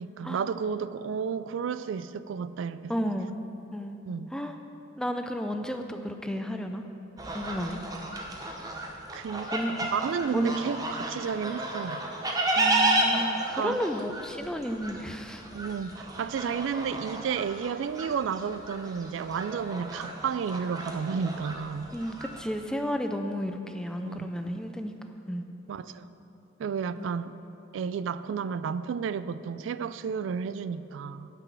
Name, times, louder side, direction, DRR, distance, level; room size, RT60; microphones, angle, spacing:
voice 1, 0.0-3.1 4.0-4.3 9.1-9.5 9.9-12.0 13.5-13.8 15.5-21.9 24.0-24.3 25.7-26.1 26.6-27.3 27.7-31.3, right 6 dB, 75° right, 14 dB, 0.3 m, -32 dB
voice 2, 2.9-3.3 3.7-4.0 4.3-4.6 5.0-6.8 7.3-7.8 9.5-9.7 10.3-10.7 12.6-15.4 21.9-24.9 25.3-25.4 27.0-27.1, equal, 5° left, 6 dB, 0.4 m, -32 dB
sound 1, 7.2-22.4, right 2 dB, 20° right, 0.7 m, -32 dB
9.0 x 6.0 x 6.9 m, 2.9 s
head